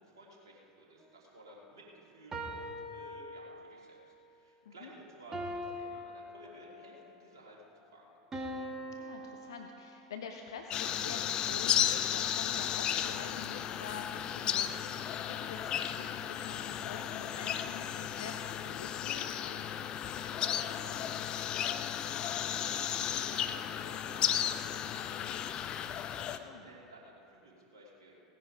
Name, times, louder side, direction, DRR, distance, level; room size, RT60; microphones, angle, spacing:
voice 1, 0.0-8.1 20.2-25.5 25.8-28.1, right 1 dB, 65° right, -3 dB, 2.9 m, -56 dB
sound 1, 2.3-3.9 5.3-7.0 8.3-10.2, equal, 20° right, 1.7 m, -42 dB
voice 2, 8.9-19.6 26.4-26.7, left 6 dB, 65° left, 3 dB, 0.8 m, -47 dB
sound 2, 10.7-26.4, left 10 dB, 35° left, 0.6 m, -34 dB
17.5 x 9.9 x 5.1 m, 2.7 s
figure-of-eight pair, 80°, 2 cm